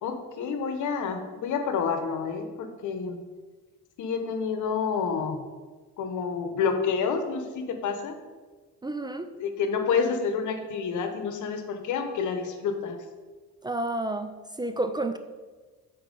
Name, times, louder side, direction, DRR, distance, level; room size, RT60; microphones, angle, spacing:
voice 1, 0.0-3.2 4.0-5.4 6.0-8.1 9.4-13.0, left 6 dB, 75° left, 6 dB, 1.0 m, -29 dB
voice 2, 8.8-9.3 13.6-15.2, right 2 dB, 15° right, 8 dB, 0.4 m, -30 dB
7.1 x 4.4 x 5.2 m, 1.3 s
cardioid pair, 90°, 30 cm